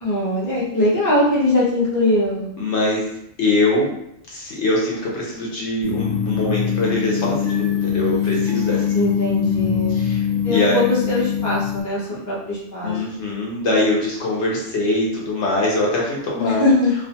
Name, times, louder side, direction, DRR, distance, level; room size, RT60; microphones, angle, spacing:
voice 1, 0.0-2.5 8.9-10.0 10.4-13.0 16.3-16.9, left 1 dB, 20° left, -7 dB, 0.6 m, -21 dB
voice 2, 2.6-3.1 3.4-3.9 4.3-8.9 9.9-10.8 12.1-12.2 12.8-16.6, left 2 dB, 65° left, -3 dB, 0.9 m, -22 dB
sound 1, 5.8-11.8, left 8 dB, 50° right, 0.6 m, -22 dB
2.4 x 2.2 x 2.7 m, 0.78 s
omnidirectional pair, 1.3 m